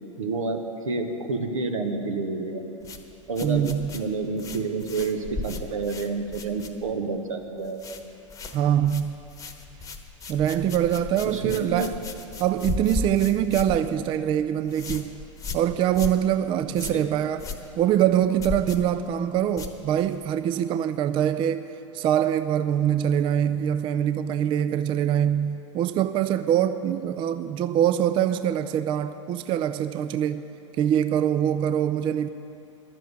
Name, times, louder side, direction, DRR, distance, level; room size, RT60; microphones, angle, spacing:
voice 1, 0.2-2.6 3.3-3.6 3.9-7.8 11.2-11.9 16.8-17.0, right 3 dB, 80° right, 1.1 m, -29 dB
sound 1, 2.8-7.2 7.4-8.0 8.3-20.3, left 3 dB, 20° left, 1.0 m, -36 dB
voice 2, 3.4-4.0 8.5-9.2 10.3-12.0 12.4-15.1 15.5-17.5 17.8-30.5 30.8-32.3, right 10 dB, 30° right, 0.3 m, -24 dB
11.5 x 7.6 x 9.2 m
hypercardioid pair, 95°, 17 cm